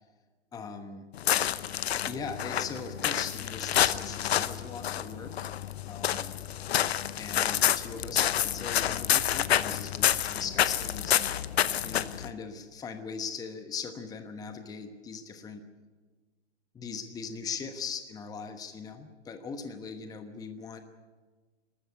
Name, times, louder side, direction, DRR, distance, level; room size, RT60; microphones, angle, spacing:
voice 1, 0.5-1.0 2.0-5.5 5.9-6.4 7.2-11.3 11.8-15.6 16.7-20.8, left 5 dB, 10° left, 8 dB, 1.1 m, -40 dB
sound 1, 1.1-12.3, left 10 dB, 65° left, 0.9 m, -28 dB
22.5 x 13.5 x 9.4 m, 1.4 s
hypercardioid pair, 130°, 34 cm